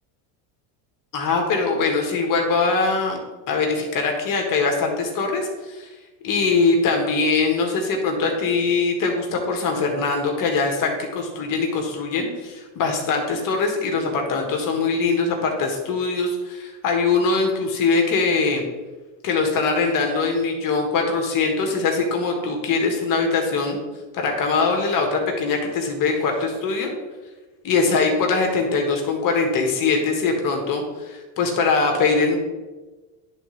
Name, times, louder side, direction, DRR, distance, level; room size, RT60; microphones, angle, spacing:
voice 1, 1.1-3.2 3.5-5.9 6.2-18.6 19.2-23.8 24.1-26.9 27.6-32.4, left 4 dB, 50° left, 2 dB, 1.4 m, -22 dB
10.5 x 3.8 x 3.2 m, 1.2 s
supercardioid pair, 115°, 43 cm